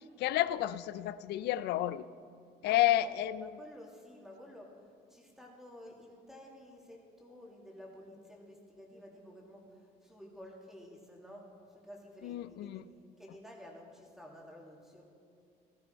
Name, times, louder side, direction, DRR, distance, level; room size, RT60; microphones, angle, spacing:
voice 1, 0.2-2.0 2.6-3.5 12.2-12.8, left 14 dB, 80° left, 16 dB, 0.5 m, -30 dB
voice 2, 2.6-15.0, equal, ahead, -1 dB, 2.4 m, -52 dB
14.5 x 14.0 x 4.5 m, 2.4 s
cardioid pair, 110°, 17 cm